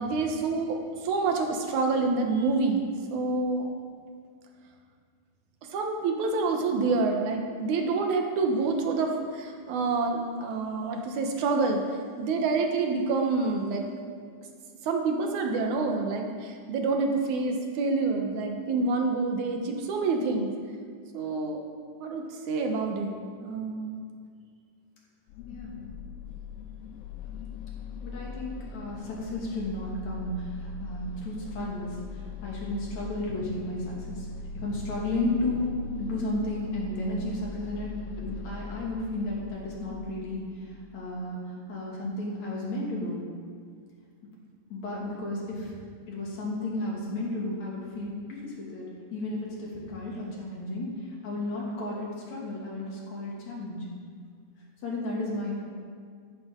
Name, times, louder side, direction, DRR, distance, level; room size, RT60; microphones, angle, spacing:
voice 1, 0.0-3.7 5.7-11.8 12.2-13.9 14.8-20.5 21.1-21.6 22.0-23.9, right 3 dB, 75° right, 3 dB, 2.4 m, -27 dB
sound 1, 25.3-41.2, left 2 dB, 90° left, 1.4 m, -40 dB
voice 2, 25.5-25.8 28.0-34.3 34.5-35.7 36.0-43.2 44.7-45.7 46.1-53.9 54.8-55.6, left 2 dB, 65° left, -3 dB, 3.5 m, -33 dB
13.0 x 12.0 x 3.8 m, 2.1 s
omnidirectional pair, 3.5 m